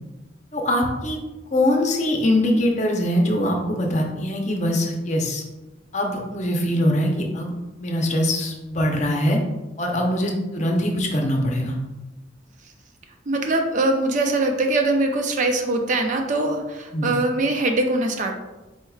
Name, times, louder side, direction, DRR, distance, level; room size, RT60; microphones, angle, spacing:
voice 1, 0.5-1.2 1.5-5.4 5.9-9.4 9.8-11.8 16.9-17.1, left 1 dB, 40° left, 1 dB, 0.7 m, -22 dB
voice 2, 13.3-18.4, right 2 dB, 40° right, 3 dB, 0.4 m, -22 dB
4.5 x 4.3 x 2.3 m, 1.1 s
head